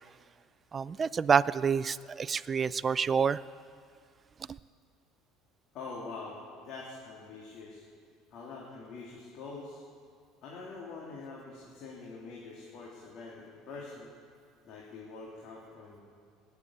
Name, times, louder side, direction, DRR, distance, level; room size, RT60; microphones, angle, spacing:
voice 1, 0.7-3.4, right 6 dB, 30° right, 17 dB, 0.4 m, -27 dB
voice 2, 5.7-7.9 8.3-9.9 10.4-14.1 14.6-16.0, left 3 dB, 60° left, -4 dB, 3.0 m, -45 dB
19.5 x 8.0 x 8.4 m, 2.1 s
hypercardioid pair, 80°, 0 cm